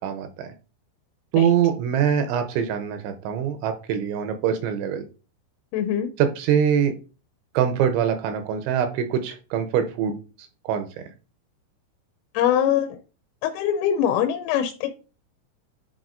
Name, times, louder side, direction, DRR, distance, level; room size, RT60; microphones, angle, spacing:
voice 1, 0.0-0.5 1.3-5.0 6.2-6.9 7.5-10.2 10.6-10.9, right 8 dB, 85° right, 2.8 m, -23 dB
voice 2, 5.7-6.1 12.3-12.9 13.4-14.9, left 10 dB, 90° left, 3.3 m, -22 dB
10.5 x 4.2 x 2.5 m
omnidirectional pair, 5.8 m